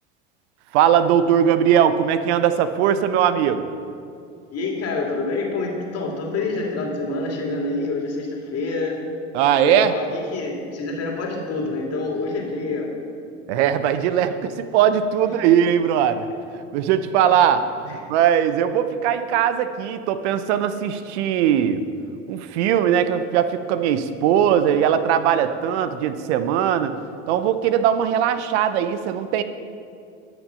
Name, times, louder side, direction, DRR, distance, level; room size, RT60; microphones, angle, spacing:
voice 1, 0.7-3.7 9.3-9.9 13.5-16.3 16.7-21.8 22.3-26.9 27.3-29.4, right 9 dB, 70° right, 11 dB, 0.7 m, -20 dB
voice 2, 4.5-9.0 9.6-13.0 15.2-15.3 17.9-18.0, left 3 dB, 45° left, 0 dB, 2.5 m, -27 dB
12.5 x 6.1 x 5.6 m, 2.4 s
hypercardioid pair, 80°, 34 cm